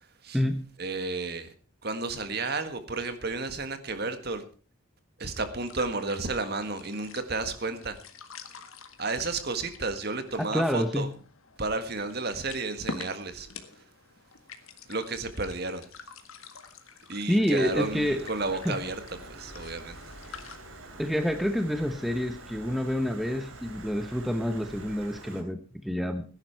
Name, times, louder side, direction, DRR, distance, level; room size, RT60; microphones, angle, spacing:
voice 1, 0.8-1.5 1.8-4.4 5.2-7.9 9.0-11.1 11.6-13.5 14.9-15.9 17.1-20.0, right 3 dB, 50° right, 1.7 m, -32 dB
sound 1, 5.4-20.6, left 4 dB, 85° left, 1.7 m, -47 dB
voice 2, 10.5-11.1 17.3-18.2 18.6-18.8 21.0-26.2, equal, ahead, 0.9 m, -28 dB
Stream, 17.6-25.4, right 2 dB, 80° right, 3.3 m, -46 dB
16.5 x 11.0 x 4.6 m
head